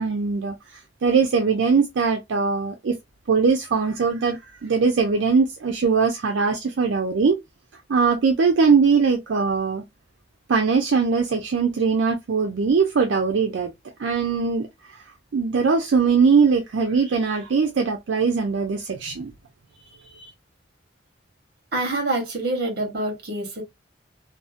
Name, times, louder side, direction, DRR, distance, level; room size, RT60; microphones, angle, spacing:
voice 1, 0.0-2.9 3.3-7.4 7.9-9.8 10.5-13.7 14.0-15.0 15.3-19.3 20.1-20.3, right 5 dB, 75° right, 0.4 m, -21 dB
voice 2, 21.7-23.6, right 2 dB, 55° right, 1.0 m, -26 dB
2.6 x 2.0 x 2.4 m
head